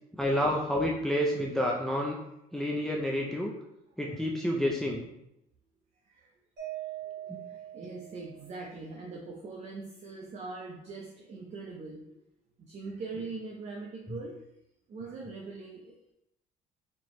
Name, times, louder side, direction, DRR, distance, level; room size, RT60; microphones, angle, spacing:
voice 1, 0.2-2.2 2.5-3.5 4.0-5.1 7.3-7.4, equal, ahead, -1 dB, 0.5 m, -29 dB
Mallet percussion, 6.6-8.8, right 13 dB, 80° right, 1.5 m, -42 dB
voice 2, 7.7-12.1 12.6-14.3 14.9-15.9, right 3 dB, 40° right, 0 dB, 0.7 m, -41 dB
4.3 x 3.0 x 3.1 m, 0.82 s
cardioid pair, 110°, 17 cm